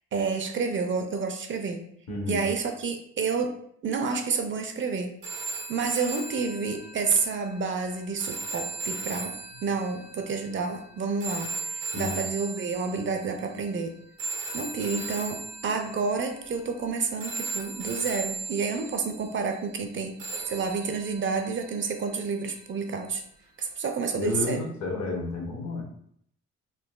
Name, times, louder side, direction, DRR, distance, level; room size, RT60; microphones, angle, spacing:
voice 1, 0.1-1.9 2.3-3.5 3.8-5.1 5.7-9.4 9.6-13.9 14.5-20.2 20.5-23.2 23.6-24.6, right 5 dB, 40° right, 5 dB, 0.4 m, -29 dB
voice 2, 2.1-2.4 9.5-9.6 11.9-12.2 24.1-25.8, left 2 dB, 65° left, 0 dB, 1.0 m, -31 dB
sound 1, 5.2-13.4 14.2-16.9 17.2-19.3 20.2-22.4 23.6-23.7, right 3 dB, 90° right, 0.8 m, -37 dB
3.7 x 2.3 x 2.3 m, 0.67 s
cardioid pair, 90°, 30 cm